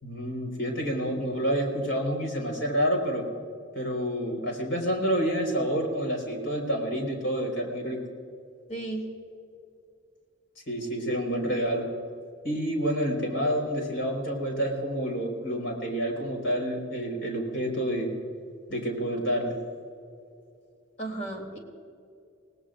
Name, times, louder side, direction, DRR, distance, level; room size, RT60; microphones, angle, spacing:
voice 1, 0.0-3.2 3.7-8.0 10.7-11.9 12.4-18.1 18.7-19.5, equal, 65° left, 1 dB, 4.7 m, -28 dB
voice 2, 8.7-9.1 21.0-21.6, right 2 dB, 40° left, 1 dB, 3.3 m, -34 dB
27.5 x 19.0 x 2.6 m, 2.4 s
head